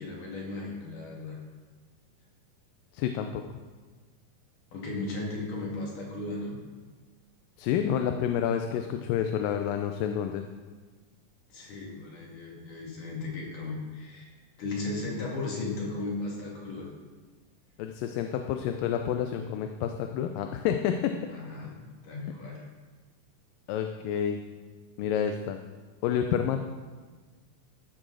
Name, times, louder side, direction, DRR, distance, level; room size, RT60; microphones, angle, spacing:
voice 1, 0.0-1.4 4.7-6.6 11.5-14.3 14.6-16.9 21.3-21.7 22.0-22.6, left 2 dB, 65° left, -3 dB, 4.0 m, -36 dB
voice 2, 2.9-3.4 7.6-10.4 17.8-21.1 23.7-24.4 25.0-25.6 26.0-26.6, left 9 dB, 85° left, 5 dB, 2.3 m, -29 dB
14.0 x 6.2 x 6.3 m, 1.4 s
omnidirectional pair, 3.9 m